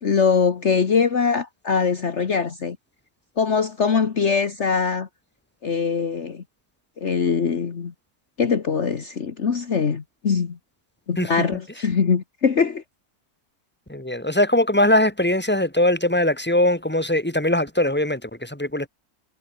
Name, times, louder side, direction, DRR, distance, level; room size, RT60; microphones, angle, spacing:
voice 1, 0.0-2.8 3.4-5.1 5.6-6.4 7.0-7.9 8.4-10.6 11.1-12.8, left 6 dB, 50° left, 1.7 m, -22 dB
voice 2, 13.9-18.9, left 1 dB, 5° left, 3.3 m, -21 dB
omnidirectional pair, 1.6 m